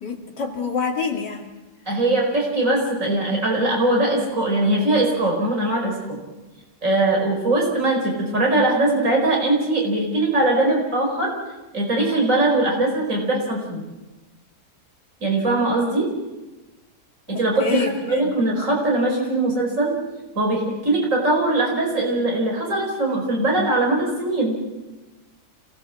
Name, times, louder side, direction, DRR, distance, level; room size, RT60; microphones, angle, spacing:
voice 1, 0.0-1.5 17.3-18.3, left 5 dB, 90° left, 1 dB, 2.8 m, -27 dB
voice 2, 1.9-6.2 6.8-11.3 11.7-13.8 15.2-16.1 17.3-19.9 20.4-24.6, right 2 dB, 50° right, 0 dB, 5.2 m, -21 dB
26.5 x 17.0 x 7.7 m, 1.1 s
omnidirectional pair, 1.8 m